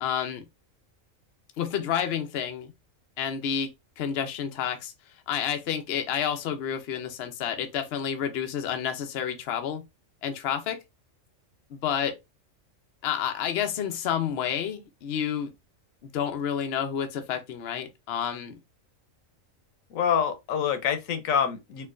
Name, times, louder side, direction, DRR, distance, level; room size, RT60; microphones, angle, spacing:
voice 1, 0.0-0.4 1.6-2.7 3.2-3.7 4.0-4.9 5.3-9.8 10.2-10.8 11.7-12.2 13.0-15.5 16.1-18.5, left 8 dB, 60° left, 0.8 m, -29 dB
voice 2, 19.9-21.9, left 8 dB, 85° left, 1.1 m, -26 dB
4.5 x 2.2 x 2.4 m
omnidirectional pair, 1.4 m